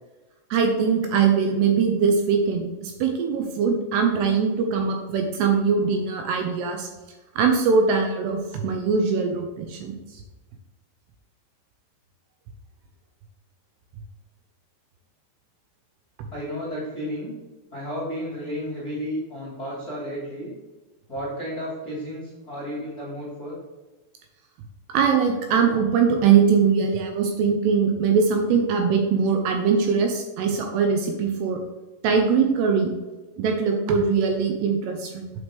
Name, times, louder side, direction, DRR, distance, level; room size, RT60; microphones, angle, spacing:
voice 1, 0.5-6.9 7.4-9.9 24.9-31.6 32.0-32.9 33.4-35.3, right 6 dB, 80° right, 3 dB, 2.6 m, -21 dB
voice 2, 16.3-17.3 17.7-20.5 21.1-23.6, equal, 45° left, -7 dB, 1.2 m, -32 dB
8.1 x 4.8 x 3.5 m, 1.2 s
omnidirectional pair, 5.2 m